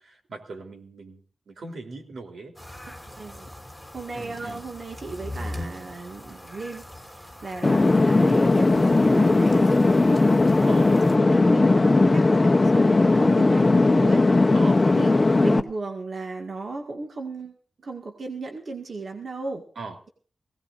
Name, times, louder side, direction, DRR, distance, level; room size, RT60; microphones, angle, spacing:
voice 1, 0.0-2.5 4.1-4.6 7.9-8.1 10.6-11.0 14.5-14.8 19.7-19.9, right 3 dB, 85° right, 3 dB, 3.5 m, -39 dB
sound 1, 2.6-11.2, left 1 dB, 5° right, 3.1 m, -41 dB
voice 2, 2.9-3.5 3.9-10.7 11.0-14.3 14.8-19.6, right 3 dB, 50° right, 2 dB, 1.9 m, -36 dB
sound 2, 7.6-15.6, left 2 dB, 25° left, 0.8 m, -18 dB
20.5 x 17.5 x 2.6 m, 0.43 s
wide cardioid pair, 170°, 0 cm